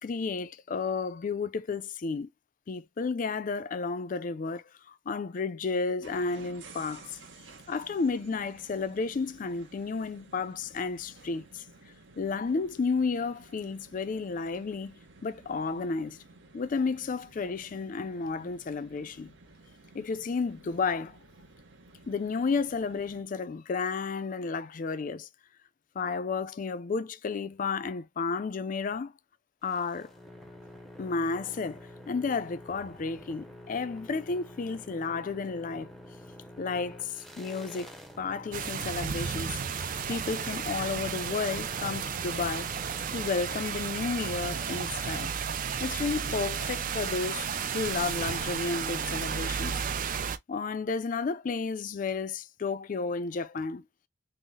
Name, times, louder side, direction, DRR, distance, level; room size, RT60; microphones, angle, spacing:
voice 1, 0.0-2.3 2.7-7.2 7.7-11.6 12.2-16.2 16.5-19.3 19.9-21.2 22.1-25.3 25.9-29.1 29.6-30.1 31.0-35.9 36.6-42.7 43.1-45.3 45.8-47.5 47.7-53.8, left 4 dB, 45° left, 0.4 m, -32 dB
sound 1, 6.0-23.2, right 3 dB, 65° right, 0.9 m, -54 dB
sound 2, 29.6-44.2, left 1 dB, ahead, 0.6 m, -48 dB
sound 3, 38.5-50.4, right 7 dB, 45° right, 0.4 m, -33 dB
3.9 x 2.0 x 3.6 m
head